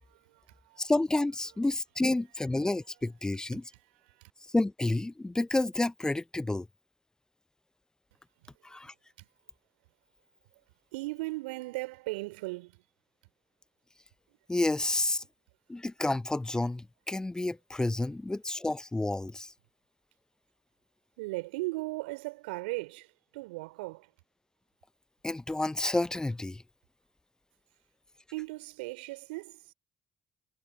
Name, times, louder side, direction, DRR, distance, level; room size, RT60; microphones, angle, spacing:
voice 1, 0.0-0.8 2.9-3.1 3.5-4.3 8.4-8.5 9.2-9.3 10.9-12.8 21.2-24.1 28.3-29.7, right 23 dB, 75° right, 3.5 m, -38 dB
voice 2, 0.8-3.6 4.5-6.7 8.6-8.9 14.5-15.2 15.7-19.5 25.2-26.6, left 2 dB, 10° left, 0.4 m, -30 dB
figure-of-eight pair, 45°, 6 cm